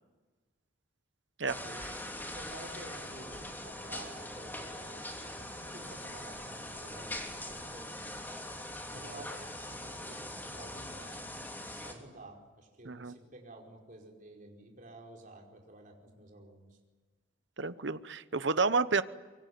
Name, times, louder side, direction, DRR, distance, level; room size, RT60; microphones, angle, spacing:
sound 1, 1.5-11.9, left 1 dB, 10° left, 3.1 m, -42 dB
voice 1, 2.3-5.0 5.3-8.5 8.9-16.8, right 2 dB, 45° right, 1 dB, 5.0 m, -51 dB
voice 2, 17.6-19.0, right 4 dB, 60° right, 13 dB, 1.0 m, -30 dB
24.5 x 24.0 x 9.5 m, 1.3 s
head